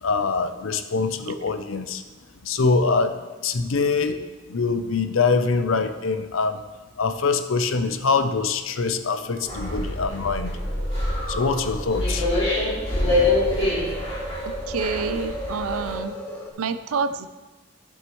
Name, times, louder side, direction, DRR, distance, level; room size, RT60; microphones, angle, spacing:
voice 1, 0.0-2.0 2.4-3.2 3.4-6.6 7.0-10.5 11.3-12.3, left 4 dB, 70° left, 9 dB, 0.6 m, -24 dB
sound 1, 7.4-16.5, right 1 dB, 10° left, 1.2 m, -37 dB
sound 2, 9.5-15.9, left 1 dB, 25° left, 2.7 m, -25 dB
voice 2, 14.4-16.2 16.6-17.3, right 5 dB, 90° right, 12 dB, 0.5 m, -28 dB
12.0 x 7.2 x 3.1 m, 1.2 s
head